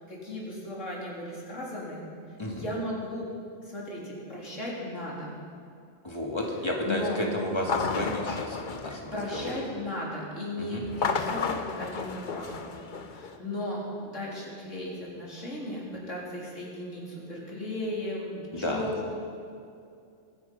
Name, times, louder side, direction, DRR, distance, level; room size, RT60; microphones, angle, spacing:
voice 1, 0.1-2.0 2.5-3.3 3.6-5.3 6.8-7.2 9.1-19.1, left 1 dB, 85° left, -5 dB, 4.1 m, -36 dB
voice 2, 2.4-2.7 6.0-9.6 10.6-10.8 18.5-18.9, left 1 dB, 20° left, -1 dB, 2.3 m, -32 dB
sound 1, 7.6-9.8 10.8-13.4, left 5 dB, 45° left, 0.9 m, -33 dB
23.5 x 10.0 x 5.4 m, 2.5 s
omnidirectional pair, 1.2 m